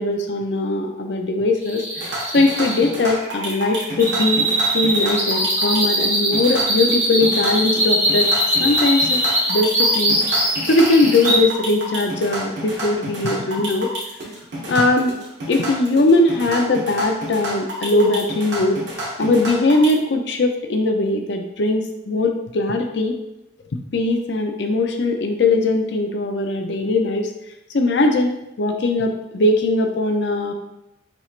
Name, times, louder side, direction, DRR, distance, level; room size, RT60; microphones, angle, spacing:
voice 1, 0.0-4.4 4.7-8.3 8.6-9.2 9.5-10.2 10.6-13.9 14.7-15.1 15.5-18.8 19.2-23.2 23.9-27.3 27.7-30.5, left 2 dB, 65° left, 4 dB, 0.5 m, -20 dB
sound 1, 1.6-11.4, right 1 dB, 15° right, 1.2 m, -21 dB
sound 2, 2.0-19.9, right 1 dB, 70° right, 1.4 m, -30 dB
5.9 x 3.2 x 2.5 m, 0.88 s
head